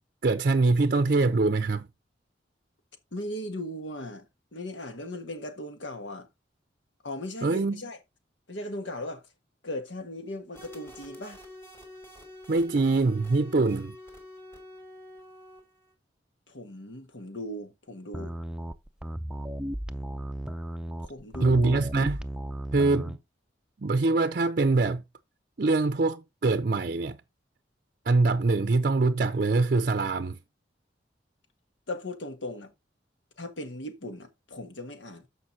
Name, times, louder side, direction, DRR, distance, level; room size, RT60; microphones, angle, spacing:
voice 1, 0.2-1.9 7.4-7.8 12.5-14.0 21.4-22.2 22.7-23.2 23.8-25.0 25.6-27.2 28.1-30.4, right 3 dB, 50° right, 0.5 m, -24 dB
voice 2, 3.1-4.3 4.5-6.3 7.0-8.0 8.5-9.3 9.6-11.4 16.5-18.3 21.0-21.8 31.9-32.7 33.4-35.3, left 1 dB, 85° left, 1.6 m, -37 dB
sound 1, 10.5-15.9, left 1 dB, 15° left, 2.7 m, -47 dB
sound 2, 18.1-23.2, right 1 dB, 5° right, 0.5 m, -35 dB
13.5 x 5.2 x 2.8 m
head